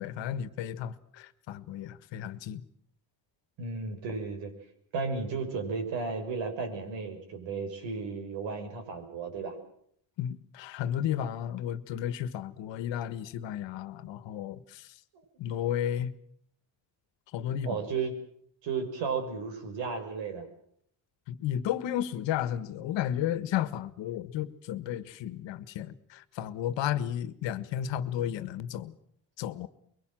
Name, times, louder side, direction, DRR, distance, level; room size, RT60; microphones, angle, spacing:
voice 1, 0.0-2.6 10.2-14.9 15.4-16.1 17.3-17.8 21.3-28.9 29.4-29.7, left 10 dB, 70° left, 1.5 m, -33 dB
voice 2, 3.6-4.5 4.9-9.5 15.1-15.2 17.6-18.1 18.6-20.5, right 4 dB, 75° right, 6.1 m, -34 dB
24.0 x 23.0 x 7.6 m
cardioid pair, 150°, 46 cm